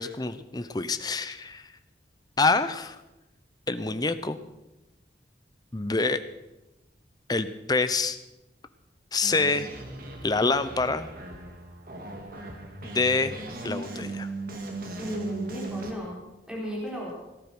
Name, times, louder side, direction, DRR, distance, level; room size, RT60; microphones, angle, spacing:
voice 1, 0.0-1.7 2.4-3.0 3.7-4.4 5.7-6.2 7.3-8.2 9.1-9.7 10.2-11.1 12.8-13.4 13.6-14.3, left 3 dB, 25° left, 12 dB, 0.7 m, -26 dB
sound 1, 9.2-15.9, right 2 dB, 55° right, 2.2 m, -38 dB
voice 2, 15.0-16.2 16.5-17.1, equal, 5° right, -5 dB, 4.3 m, -34 dB
18.0 x 12.0 x 6.1 m, 0.98 s
head